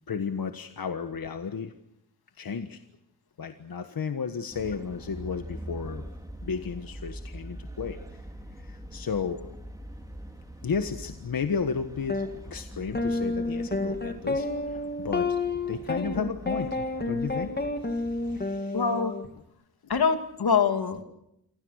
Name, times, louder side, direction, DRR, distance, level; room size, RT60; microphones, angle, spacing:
voice 1, 0.1-1.7 2.4-2.8 3.4-6.1 6.4-8.0 8.5-9.4 10.6-15.4 15.7-17.5 17.8-18.8, left 6 dB, 70° left, 8 dB, 1.5 m, -33 dB
sound 1, 4.5-18.4, equal, 10° right, 3.8 m, -43 dB
sound 2, 12.1-12.3 12.9-19.3, left 2 dB, 25° left, 2.5 m, -30 dB
voice 2, 18.7-19.1 19.9-21.0, left 6 dB, 85° left, 7 dB, 2.6 m, -24 dB
29.0 x 24.5 x 6.5 m, 0.79 s
wide cardioid pair, 155°, 36 cm